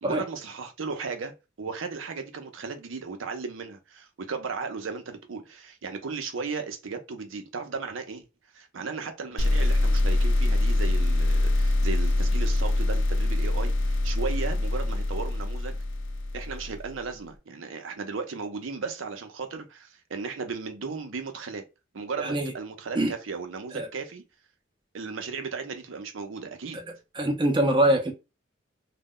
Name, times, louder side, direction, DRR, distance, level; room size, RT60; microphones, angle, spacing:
voice 1, 0.0-1.3 1.6-8.2 8.5-15.8 16.3-21.6 21.9-24.2 24.9-26.8, right 4 dB, 85° right, 0.6 m, -35 dB
sound 1, 9.4-16.9, left 2 dB, 75° left, 0.4 m, -24 dB
voice 2, 22.2-22.5 23.0-23.1 23.7-23.9 26.7-26.8 27.1-28.1, right 1 dB, 25° right, 0.5 m, -24 dB
2.2 x 2.0 x 3.6 m
head